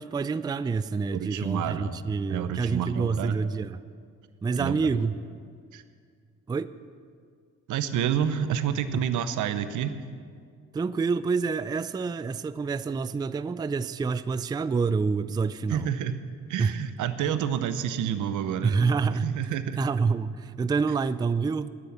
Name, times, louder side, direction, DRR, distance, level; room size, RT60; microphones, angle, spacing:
voice 1, 0.0-3.8 4.4-5.2 6.5-6.7 10.7-15.9 16.6-16.7 18.6-19.3 19.8-21.7, right 4 dB, 15° right, 15 dB, 0.3 m, -27 dB
voice 2, 1.1-1.9 2.3-3.4 4.6-4.9 5.7-5.8 7.7-10.0 15.7-16.1 16.5-18.7 19.1-19.8, right 9 dB, 80° right, 12 dB, 0.8 m, -29 dB
12.0 x 9.9 x 7.4 m, 2.1 s
cardioid pair, 90°, 30 cm